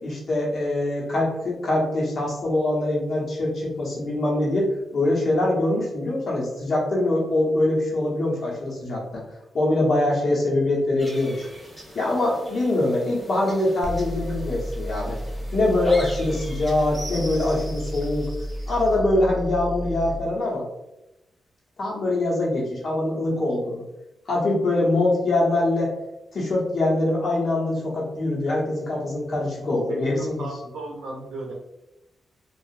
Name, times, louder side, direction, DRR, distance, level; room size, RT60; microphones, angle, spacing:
voice 1, 0.0-9.2 9.5-11.4 11.9-15.2 15.5-18.3 18.7-20.6 21.8-23.8 24.3-25.9 26.3-30.4, left 2 dB, 60° left, -4 dB, 1.0 m, -23 dB
sound 1, 11.0-19.0, equal, 5° right, 1.1 m, -42 dB
sound 2, 13.8-20.2, equal, 45° left, 0.5 m, -32 dB
voice 2, 29.9-31.5, right 2 dB, 85° right, -2 dB, 0.5 m, -35 dB
2.8 x 2.4 x 2.5 m, 0.95 s
cardioid pair, 60°, 0 cm